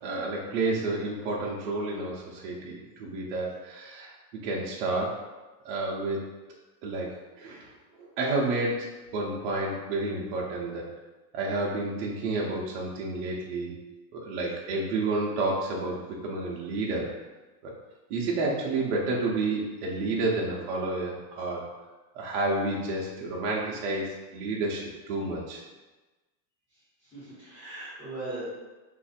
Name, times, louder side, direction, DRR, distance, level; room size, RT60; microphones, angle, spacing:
voice 1, 0.0-4.2 4.4-5.2 5.6-6.2 6.8-7.7 8.0-8.9 9.1-10.8 11.3-13.7 14.1-17.1 17.6-17.7 18.1-21.7 22.1-25.6, right 2 dB, 45° right, -3 dB, 0.6 m, -30 dB
voice 2, 26.7-28.4, right 2 dB, 5° left, -12 dB, 1.1 m, -40 dB
2.6 x 2.4 x 4.0 m, 1.2 s
supercardioid pair, 165°, 50 cm